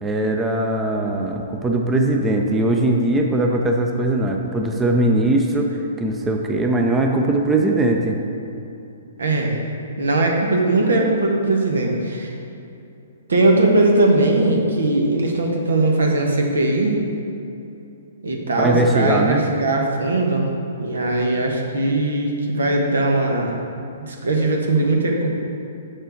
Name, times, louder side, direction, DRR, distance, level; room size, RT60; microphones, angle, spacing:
voice 1, 0.0-8.2 18.6-19.4, right 2 dB, 10° right, 1 dB, 0.6 m, -20 dB
voice 2, 9.2-9.5 10.0-12.3 13.3-17.0 18.2-20.5 20.8-23.6 24.0-25.3, right 2 dB, 75° right, 1 dB, 1.2 m, -19 dB
6.7 x 6.4 x 4.5 m, 2.8 s
figure-of-eight pair, 120°, 0 cm